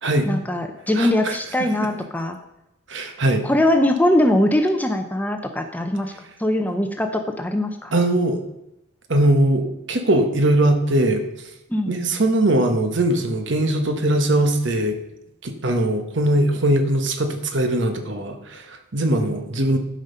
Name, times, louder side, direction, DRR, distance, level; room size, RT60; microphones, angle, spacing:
voice 1, 0.3-2.4 3.4-6.1 6.4-7.9 11.7-11.9, left 1 dB, 10° left, 6 dB, 0.6 m, -21 dB
voice 2, 1.0-1.4 1.8-1.9 2.9-3.5 7.9-8.4 9.1-11.3 11.9-15.0 15.4-19.8, right 1 dB, 60° right, 6 dB, 1.2 m, -20 dB
12.0 x 5.3 x 5.6 m, 0.89 s
head